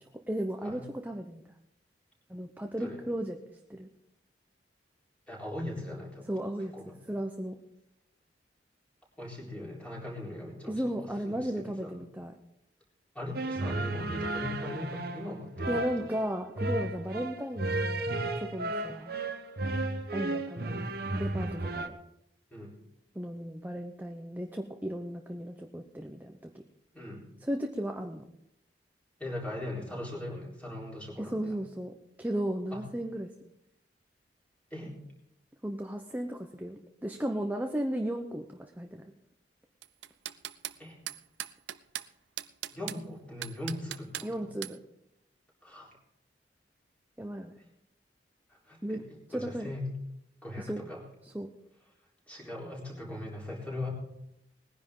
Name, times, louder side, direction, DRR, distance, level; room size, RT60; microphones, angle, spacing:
voice 1, 0.3-1.4 2.3-3.4 3.7-3.9 6.3-6.7 7.1-7.5 10.7-12.3 15.7-19.2 20.1-22.0 23.1-26.5 27.4-28.2 31.2-33.3 35.6-39.0 44.2-44.8 47.2-47.5 48.8-49.0 49.3-49.7 50.6-50.8 51.2-51.5, right 1 dB, 10° right, 4 dB, 0.7 m, -35 dB
voice 2, 5.3-6.3 6.7-6.9 9.2-11.9 13.1-15.9 22.5-22.7 26.9-27.3 29.2-31.6 32.7-32.8 34.7-34.9 40.8-40.9 42.7-44.5 45.6-45.9 48.7-49.0 49.3-49.9 50.4-51.0 52.3-53.9, left 1 dB, 10° left, -4 dB, 3.8 m, -40 dB
sound 1, 13.3-21.9, right 2 dB, 55° right, 1.0 m, -34 dB
sound 2, 39.8-40.8 41.1-42.1 42.4-43.0 43.4-44.3 44.6-44.8, right 12 dB, 90° right, 0.5 m, -38 dB
20.0 x 10.5 x 3.8 m, 0.83 s
head